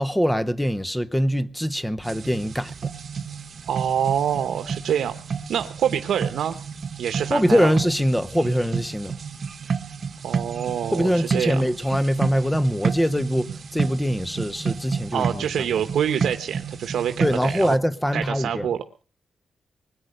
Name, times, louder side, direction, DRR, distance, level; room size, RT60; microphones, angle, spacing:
voice 1, 0.0-2.8 7.3-9.2 10.9-15.5 17.2-18.7, equal, 5° left, 0.7 m, -23 dB
sound 1, 2.0-17.8, right 6 dB, 45° right, 0.7 m, -31 dB
voice 2, 3.7-5.1 5.5-6.6 7.0-7.7 10.2-11.6 15.1-17.8 18.1-18.8, right 9 dB, 85° right, 1.0 m, -26 dB
20.5 x 9.3 x 6.6 m
wide cardioid pair, 160°, 0 cm